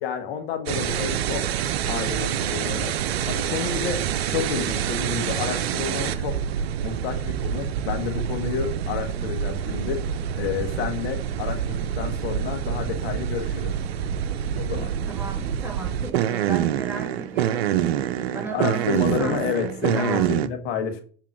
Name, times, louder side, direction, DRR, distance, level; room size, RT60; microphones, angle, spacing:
voice 1, 0.0-1.5 1.9-2.9 3.3-6.4 6.8-10.0 10.4-13.7 14.6-14.9 18.5-21.0, left 7 dB, 85° left, 5 dB, 1.6 m, -30 dB
sound 1, 0.7-20.5, right 9 dB, 90° right, 0.7 m, -26 dB
voice 2, 14.7-17.7 18.3-18.9 19.2-20.4, right 3 dB, 5° right, 0 dB, 2.6 m, -35 dB
7.5 x 3.9 x 6.0 m, 0.42 s
hypercardioid pair, 90°, 30 cm